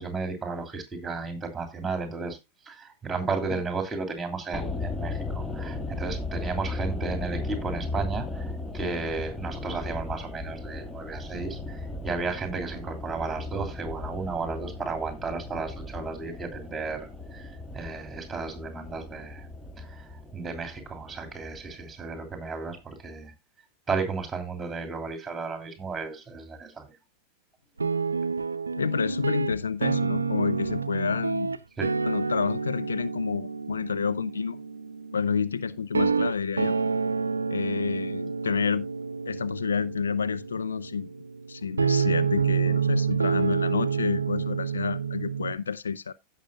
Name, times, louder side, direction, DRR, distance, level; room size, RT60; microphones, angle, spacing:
voice 1, 0.0-2.4 2.6-19.5 19.8-23.3 23.9-26.8 31.8-31.9, right 4 dB, 10° right, 2.8 m, -34 dB
sound 1, 4.5-22.7 23.0-23.1, left 2 dB, 5° left, 1.3 m, -36 dB
sound 2, 27.8-45.5, right 5 dB, 75° right, 0.6 m, -28 dB
voice 2, 28.8-31.5 32.0-34.6 35.1-36.7 37.5-38.9 39.3-41.1 41.5-46.1, left 6 dB, 70° left, 0.4 m, -29 dB
16.0 x 6.4 x 2.4 m
figure-of-eight pair, 90°, 0 cm